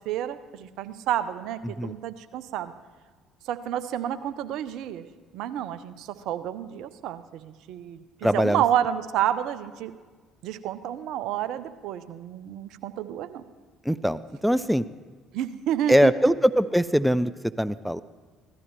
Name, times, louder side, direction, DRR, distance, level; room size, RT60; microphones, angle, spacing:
voice 1, 0.1-2.7 3.5-5.0 5.3-9.9 10.4-13.4 15.3-16.1, right 11 dB, 65° right, 13 dB, 0.5 m, -30 dB
voice 2, 8.2-8.6 13.9-14.8 15.9-18.0, equal, ahead, 15 dB, 0.4 m, -22 dB
16.0 x 13.0 x 3.1 m, 1.4 s
hypercardioid pair, 55°, 0 cm